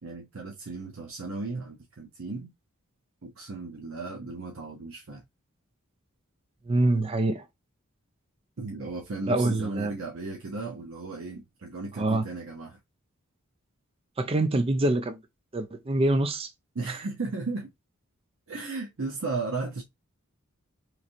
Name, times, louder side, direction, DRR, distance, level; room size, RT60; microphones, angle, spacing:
voice 1, 0.0-2.5 3.2-5.2 8.6-12.8 16.7-17.7 18.5-19.8, right 3 dB, 65° right, 0.7 m, -35 dB
voice 2, 6.7-7.4 9.3-9.9 12.0-12.2 14.2-15.2 15.5-16.5 16.9-17.0, right 2 dB, 25° right, 0.5 m, -25 dB
3.1 x 2.7 x 2.5 m
head